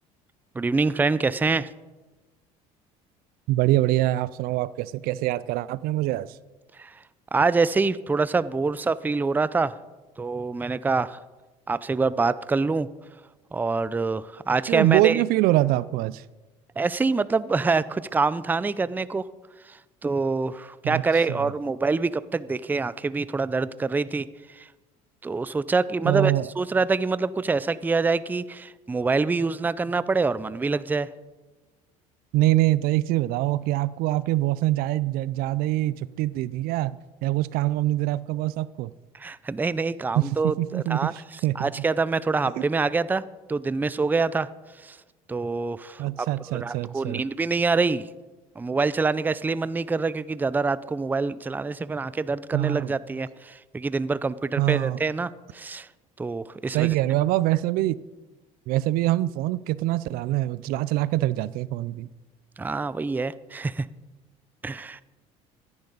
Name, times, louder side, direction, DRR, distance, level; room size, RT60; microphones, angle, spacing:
voice 1, 0.6-1.7 6.8-6.9 7.3-9.8 10.2-11.2 11.7-12.9 13.5-15.2 16.8-19.3 19.7-24.3 24.5-24.7 25.2-31.1 39.1-41.1 41.6-43.2 43.5-44.5 44.8-45.0 45.3-46.3 46.5-48.0 48.6-55.9 56.2-56.9 62.6-63.9 64.6-65.0, right 4 dB, 10° right, 0.4 m, -25 dB
voice 2, 3.5-6.4 14.7-16.2 20.8-21.0 21.3-21.5 26.0-26.5 32.3-38.9 40.2-41.7 42.6-42.7 46.0-47.2 52.5-52.9 54.6-55.0 56.7-58.0 58.7-62.1, right 16 dB, 70° right, 0.4 m, -24 dB
15.0 x 11.0 x 4.0 m
supercardioid pair, 90°, 16 cm